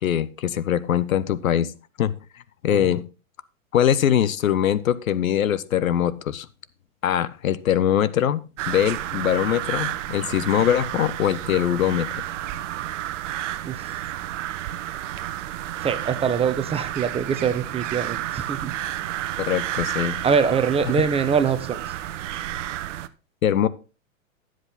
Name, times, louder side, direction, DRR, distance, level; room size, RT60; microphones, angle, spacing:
voice 1, 0.0-1.7 2.0-2.1 2.6-3.0 3.7-6.5 7.0-12.2 19.4-20.2 23.4-23.7, left 10 dB, 85° left, 17 dB, 0.9 m, -22 dB
sound 1, 8.6-23.1, right 13 dB, 65° right, 0.9 m, -31 dB
voice 2, 13.6-14.0 15.8-18.7 20.2-21.9, right 6 dB, 15° right, 11 dB, 0.9 m, -24 dB
12.5 x 7.8 x 4.1 m, 0.32 s
hypercardioid pair, 120°, 40 cm